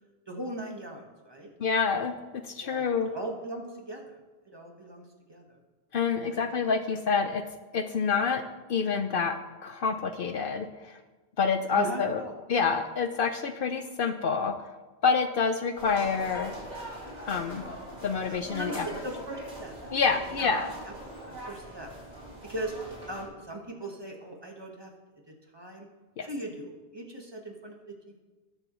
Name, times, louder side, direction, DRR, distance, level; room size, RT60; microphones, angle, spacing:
voice 1, 0.3-1.5 2.6-4.2 4.4-5.6 6.3-6.5 6.9-7.0 11.7-12.3 18.3-19.7 20.3-20.6 20.9-21.0 21.2-21.9 22.4-22.7 23.1-24.9 25.3-25.9 26.2-28.2, right 1 dB, 25° right, 1 dB, 1.4 m, -39 dB
voice 2, 1.6-3.1 5.9-7.4 7.7-8.4 8.7-9.4 9.6-11.0 11.4-12.2 12.5-14.5 15.0-16.6 17.3-17.6 18.0-18.9 19.9-20.7 26.2-26.3, left 5 dB, 60° left, 8 dB, 0.8 m, -27 dB
sound 1, 15.8-23.2, right 1 dB, 40° right, 2.6 m, -42 dB
20.0 x 6.7 x 3.1 m, 1.3 s
omnidirectional pair, 1.1 m